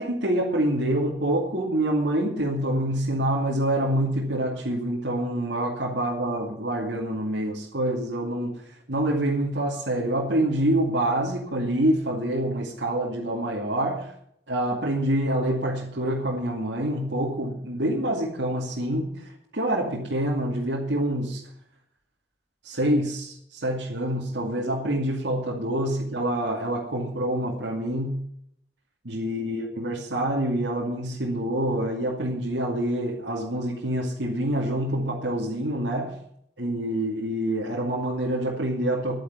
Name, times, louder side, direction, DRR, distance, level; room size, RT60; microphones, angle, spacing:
voice 1, 0.0-14.1 14.5-21.4 22.6-28.2 29.0-36.1 36.6-39.2, right 1 dB, 80° right, -4 dB, 2.6 m, -26 dB
11.0 x 9.9 x 8.7 m, 0.70 s
head